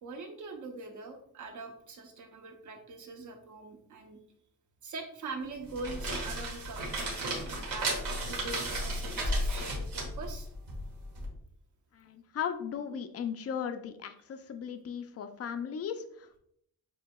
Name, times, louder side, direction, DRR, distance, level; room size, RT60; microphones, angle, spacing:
voice 1, 0.0-4.2 4.8-7.9 8.3-10.5, right 3 dB, 55° right, 4 dB, 0.8 m, -43 dB
sound 1, 5.6-11.3, right 1 dB, 70° right, 1.5 m, -34 dB
voice 2, 11.9-16.4, left 8 dB, 45° left, 8 dB, 0.4 m, -37 dB
7.4 x 2.8 x 2.3 m, 0.70 s
wide cardioid pair, 175°, 36 cm